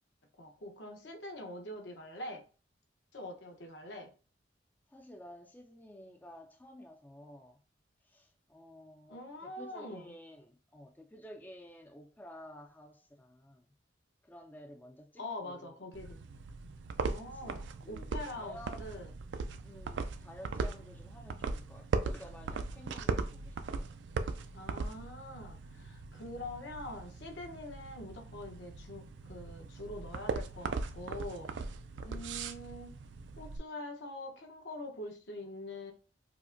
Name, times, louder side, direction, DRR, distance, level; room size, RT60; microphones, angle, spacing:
voice 1, 0.4-2.4 3.1-4.1 9.1-10.1 15.2-16.2 17.1-19.1 24.5-31.5 32.0-32.9 33.4-35.9, left 1 dB, 70° left, 0.9 m, -44 dB
voice 2, 4.9-7.6 8.0-13.7 14.2-15.8 17.1-17.5 17.8-19.1 19.6-23.9 32.1-32.3, equal, 10° left, 0.3 m, -52 dB
sound 1, 15.9-33.6, right 4 dB, 75° right, 0.4 m, -39 dB
4.8 x 2.1 x 2.5 m
head